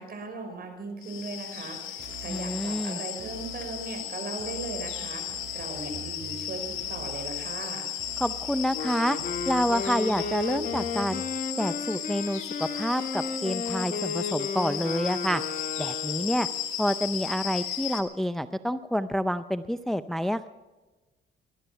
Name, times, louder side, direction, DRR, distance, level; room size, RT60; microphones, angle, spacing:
voice 1, 0.0-5.2 5.5-7.9, right 3 dB, 50° right, 5 dB, 5.0 m, -38 dB
sound 1, 1.0-18.0, left 10 dB, 90° left, 2.0 m, -35 dB
sound 2, 2.0-2.8 3.2-4.0 4.4-7.6 8.0-8.8 9.2-11.4, right 7 dB, 70° right, 5.0 m, -46 dB
voice 2, 2.3-3.0 8.2-9.2 9.5-11.2 11.6-15.4 15.8-16.5 16.8-20.5, equal, ahead, 12 dB, 0.5 m, -28 dB
Wind instrument woodwind instrument, 8.7-16.6, left 5 dB, 45° left, 1.7 m, -34 dB
19.0 x 12.5 x 5.7 m, 1.2 s
cardioid pair, 90°, 20 cm